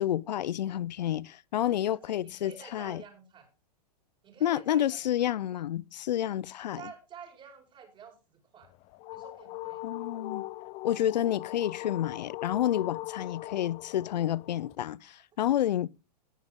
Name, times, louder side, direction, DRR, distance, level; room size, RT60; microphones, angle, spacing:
voice 1, 0.0-3.0 4.4-6.8 9.8-10.4 10.8-15.9, left 11 dB, 85° left, 0.5 m, -29 dB
voice 2, 1.7-3.5 4.2-5.0 6.7-8.1 8.5-8.7 9.1-9.9 13.4-13.7, right 7 dB, 20° right, 5.0 m, -50 dB
sound 1, 8.6-14.8, left 19 dB, 30° left, 0.5 m, -40 dB
18.0 x 7.8 x 3.6 m
hypercardioid pair, 135°, 21 cm